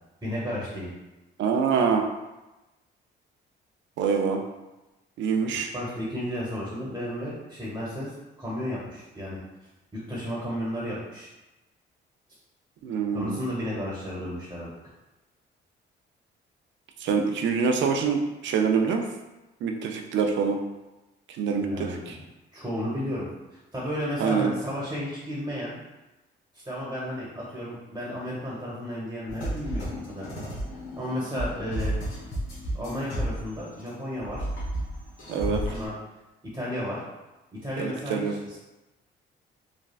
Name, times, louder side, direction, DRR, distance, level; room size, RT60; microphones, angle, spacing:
voice 1, 0.2-0.9 5.7-9.4 9.9-11.3 13.1-14.7 21.6-22.2 22.5-23.3 23.7-25.7 26.6-30.3 30.9-31.9 32.7-34.4 35.4-35.9 36.5-37.0 37.5-38.6, equal, 15° right, -7 dB, 1.0 m, -33 dB
voice 2, 1.4-2.1 4.0-4.4 5.2-5.7 12.8-13.4 17.0-19.0 19.6-20.6 21.3-22.2 24.2-24.5 35.3-35.6 37.8-38.4, right 6 dB, 70° right, 4 dB, 0.4 m, -25 dB
sound 1, 29.3-33.9 34.2-35.9, right 1 dB, 85° left, 1.0 m, -32 dB
3.2 x 2.2 x 2.4 m, 1.0 s
cardioid pair, 90°, 20 cm